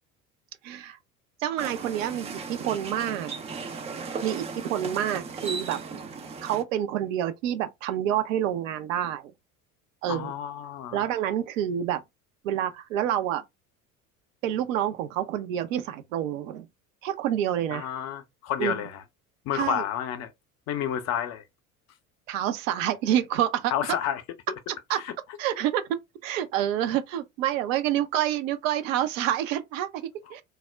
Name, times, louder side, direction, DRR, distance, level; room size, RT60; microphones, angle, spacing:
voice 1, 0.6-1.0 1.4-3.3 4.2-6.0 6.4-9.3 10.0-10.3 10.9-12.0 12.4-13.4 14.4-16.7 17.0-17.9 18.6-18.8 19.5-19.8 22.3-24.0 24.9-25.0 25.4-30.4, right 11 dB, 65° right, 0.6 m, -28 dB
sound 1, 1.6-6.6, right 4 dB, 15° right, 0.3 m, -36 dB
voice 2, 10.1-11.0 17.7-19.0 19.5-20.3 20.7-21.4 23.7-24.2 24.9-25.1, left 10 dB, 40° left, 0.5 m, -30 dB
2.3 x 2.0 x 3.2 m
figure-of-eight pair, 65°, 43 cm